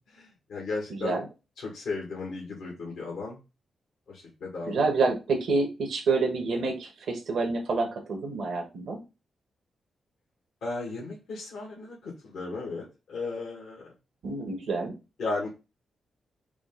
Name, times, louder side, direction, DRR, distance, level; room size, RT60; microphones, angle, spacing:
voice 1, 0.1-1.2 1.6-3.4 4.1-5.1 10.6-13.9 15.2-15.5, left 3 dB, 85° left, -4 dB, 1.7 m, -35 dB
voice 2, 0.9-1.2 4.7-9.0 14.2-14.9, right 3 dB, 75° right, 2 dB, 1.2 m, -28 dB
5.0 x 2.3 x 3.7 m, 0.28 s
cardioid pair, 55°, 0 cm